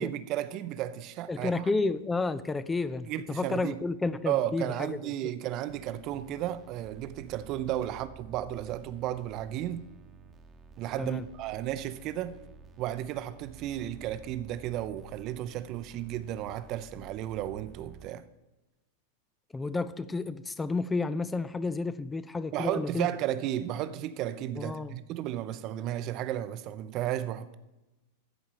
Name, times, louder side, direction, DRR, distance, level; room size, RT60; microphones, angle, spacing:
voice 1, 0.0-1.6 3.1-3.7 4.3-9.8 10.8-12.4 12.8-18.2 22.5-27.5, right 12 dB, 40° right, 0.6 m, -33 dB
voice 2, 1.3-5.0 11.0-11.2 19.5-23.1 24.6-24.9, left 3 dB, 10° left, 0.4 m, -31 dB
sound 1, 5.7-18.1, right 6 dB, 20° right, 1.0 m, -52 dB
14.0 x 4.9 x 7.2 m
figure-of-eight pair, 90°, 0 cm